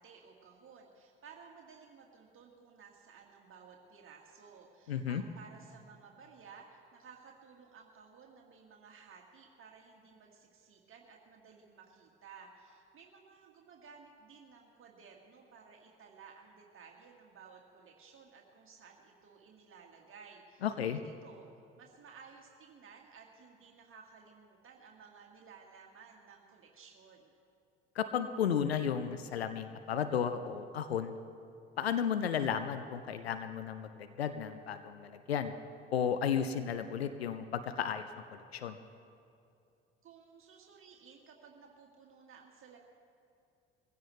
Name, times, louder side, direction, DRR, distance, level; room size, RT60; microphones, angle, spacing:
voice 1, 0.0-21.5 21.8-27.3 40.0-42.8, right 5 dB, 45° right, 0 dB, 1.9 m, -56 dB
voice 2, 4.9-5.2 20.6-21.0 28.0-31.1 31.8-35.5 35.9-38.0 38.3-38.8, left 8 dB, 90° left, 10 dB, 0.6 m, -33 dB
22.5 x 16.0 x 3.2 m, 2.6 s
figure-of-eight pair, 55°, 30 cm